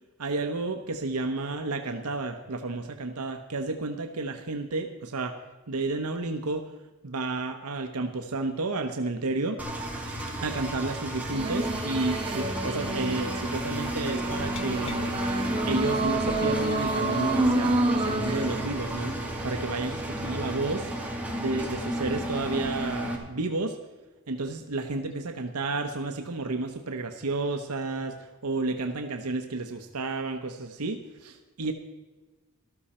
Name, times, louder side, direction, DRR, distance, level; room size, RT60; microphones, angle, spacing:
voice 1, 0.2-5.4 5.7-6.7 7.0-9.6 10.4-15.1 15.6-19.1 19.4-20.9 21.4-23.8 24.3-31.7, right 3 dB, 85° right, 5 dB, 0.9 m, -31 dB
Engine, 9.6-23.2, right 1 dB, 5° right, 2.2 m, -33 dB
sound 1, 11.3-18.7, right 2 dB, 25° right, 1.1 m, -29 dB
Glass, 14.6-20.4, left 2 dB, 25° left, 0.5 m, -40 dB
13.5 x 13.0 x 4.3 m, 1.2 s
head